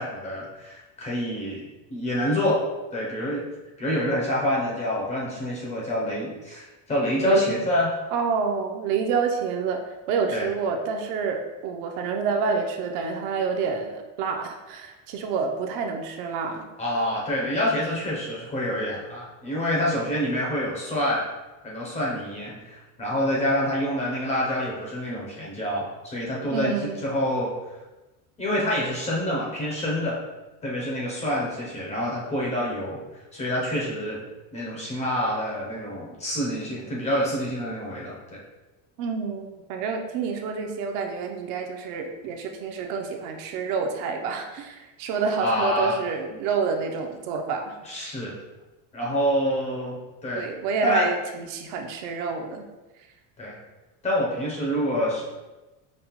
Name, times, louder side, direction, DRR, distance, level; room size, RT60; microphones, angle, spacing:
voice 1, 0.0-2.6 2.9-3.4 3.8-7.9 10.3-10.5 16.8-21.2 21.6-26.7 27.0-27.5 28.4-30.2 30.6-33.0 33.3-34.2 34.5-38.4 45.4-46.0 47.8-48.3 48.9-50.5 50.8-51.1 53.4-53.6 54.0-55.2, left 1 dB, 15° left, -4 dB, 0.5 m, -27 dB
voice 2, 7.2-7.6 8.1-16.7 26.5-27.0 39.0-47.7 50.3-52.7, right 5 dB, 60° right, 4 dB, 0.5 m, -28 dB
5.2 x 2.1 x 2.9 m, 1.1 s
cardioid pair, 170°, 40 cm